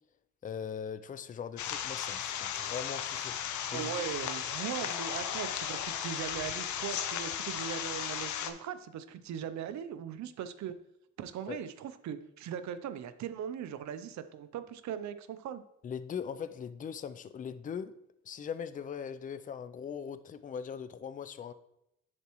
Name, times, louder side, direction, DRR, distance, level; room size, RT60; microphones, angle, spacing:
voice 1, 0.4-3.3 3.7-3.9 4.8-4.9 11.5-11.6 15.8-17.9 18.2-21.5, left 7 dB, 30° left, 13 dB, 0.4 m, -40 dB
sound 1, 1.6-8.5, left 9 dB, 70° left, 0.7 m, -36 dB
voice 2, 3.7-10.8 11.2-15.6, right 9 dB, 65° right, 11 dB, 0.6 m, -39 dB
10.5 x 4.2 x 3.0 m, 0.82 s
cardioid pair, 90°, 30 cm